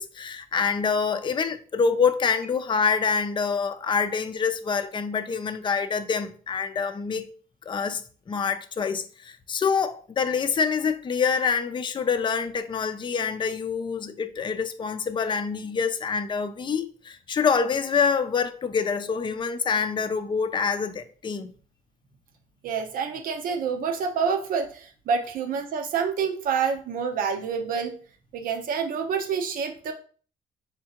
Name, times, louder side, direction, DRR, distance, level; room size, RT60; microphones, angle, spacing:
voice 1, 0.0-7.3 7.7-21.5, left 5 dB, 35° left, 0.5 m, -26 dB
voice 2, 22.6-27.9 28.3-29.9, right 6 dB, 75° right, 0.8 m, -27 dB
4.4 x 3.5 x 2.9 m
cardioid pair, 80°, 15 cm